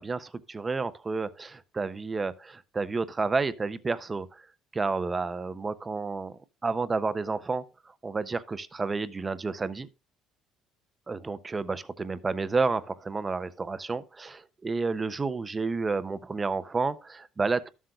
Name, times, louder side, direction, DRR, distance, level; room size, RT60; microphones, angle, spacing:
voice 1, 0.0-4.5 4.7-7.6 8.0-9.9 11.1-17.7, right 4 dB, 15° right, 0.4 m, -30 dB
14.0 x 7.6 x 2.3 m
cardioid pair, 170°, 0 cm